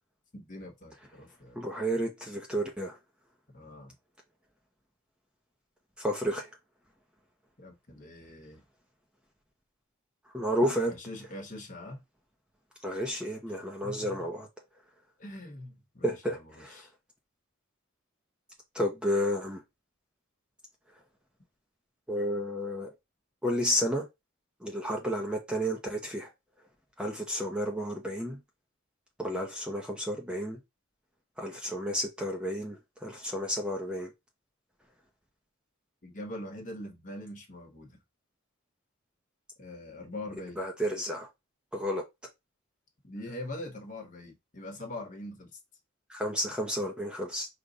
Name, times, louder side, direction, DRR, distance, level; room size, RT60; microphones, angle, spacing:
voice 1, 0.3-1.6 3.5-3.9 7.6-8.6 10.9-12.0 13.5-13.6 13.8-14.3 15.2-16.9 36.0-38.0 39.6-40.6 43.0-45.6, left 1 dB, 40° left, 1.0 m, -43 dB
voice 2, 1.6-3.0 6.0-6.5 10.3-10.9 12.8-14.5 16.0-16.7 18.7-19.6 22.1-22.9 23.4-24.0 24.6-26.3 27.0-28.4 29.2-30.6 31.4-34.1 40.6-41.3 41.7-42.0 46.1-47.5, equal, 5° right, 0.6 m, -31 dB
5.0 x 2.2 x 3.9 m
head